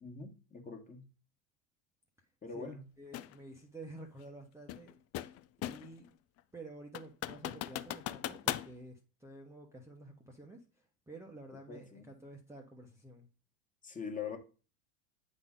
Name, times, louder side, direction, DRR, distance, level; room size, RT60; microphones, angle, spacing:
voice 1, 0.0-1.1 2.4-2.9 11.7-12.1 13.8-14.4, left 5 dB, 20° left, 1.6 m, -43 dB
voice 2, 2.5-4.9 5.6-6.1 6.5-13.3, right 2 dB, 5° right, 1.0 m, -51 dB
sound 1, 3.1-3.3 4.7-6.0 6.4-6.5 6.9-8.7, left 13 dB, 40° left, 0.5 m, -38 dB
8.6 x 4.1 x 3.7 m
supercardioid pair, 120°, 38 cm